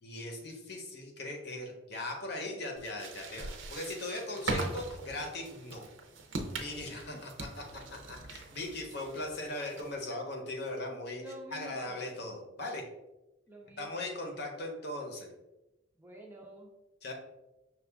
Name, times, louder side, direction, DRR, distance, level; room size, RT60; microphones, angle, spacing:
voice 1, 0.0-5.8 6.5-7.6 7.9-11.2 11.5-12.8 13.8-15.3 17.0-17.1, left 2 dB, 50° left, 1 dB, 0.8 m, -39 dB
sound 1, 2.8-10.1, right 2 dB, 70° right, 0.6 m, -41 dB
voice 2, 11.1-12.1 13.5-14.6 16.0-16.7, equal, 10° right, -1 dB, 0.5 m, -49 dB
5.8 x 2.4 x 3.4 m, 0.98 s
head